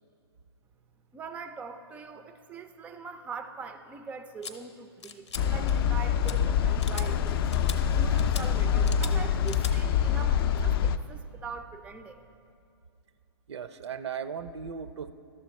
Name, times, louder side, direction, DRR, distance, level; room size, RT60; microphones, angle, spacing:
voice 1, 1.1-7.4 7.8-12.3, right 5 dB, 10° right, 9 dB, 0.3 m, -42 dB
sound 1, 4.4-4.5 5.0-5.4 5.7-6.0 6.2-6.3 6.8-7.1 7.5-7.8 8.2-8.4 8.9-9.1 9.5-9.7, left 6 dB, 90° left, 0.7 m, -39 dB
sound 2, 5.3-11.0, left 8 dB, 55° left, 0.4 m, -25 dB
voice 2, 13.5-15.1, right 7 dB, 75° right, 13 dB, 0.5 m, -37 dB
12.0 x 6.9 x 4.1 m, 2.6 s
hypercardioid pair, 130°, 14 cm